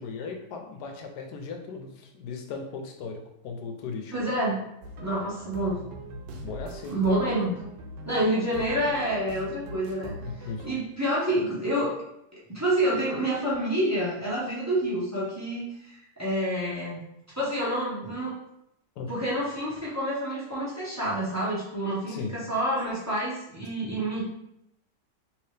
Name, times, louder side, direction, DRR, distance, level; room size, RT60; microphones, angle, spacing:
voice 1, 0.0-4.1 6.4-7.0 10.2-10.7 19.0-19.1 22.1-22.4, left 4 dB, 75° left, 3 dB, 1.1 m, -37 dB
voice 2, 4.1-4.7 5.0-5.8 6.9-7.6 8.1-10.2 10.6-11.9 12.3-17.0 17.3-18.3 19.1-24.2, right 1 dB, 20° right, -7 dB, 0.4 m, -28 dB
sound 1, 4.8-10.7, equal, 80° right, 1.2 m, -41 dB
3.2 x 2.8 x 3.2 m, 0.81 s
omnidirectional pair, 1.9 m